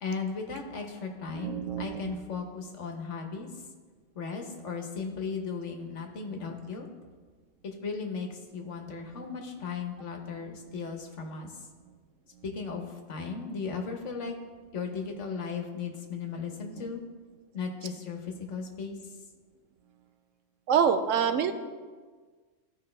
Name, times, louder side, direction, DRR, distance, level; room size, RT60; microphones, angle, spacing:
voice 1, 0.0-3.5 4.1-6.9 7.6-11.5 12.4-14.3 14.7-17.0 17.5-19.0, left 5 dB, 70° left, 3 dB, 1.4 m, -36 dB
voice 2, 1.3-2.2 9.2-9.3 16.8-16.9 20.7-21.5, right 7 dB, 85° right, 9 dB, 1.0 m, -27 dB
15.0 x 5.1 x 3.3 m, 1.5 s
omnidirectional pair, 1.3 m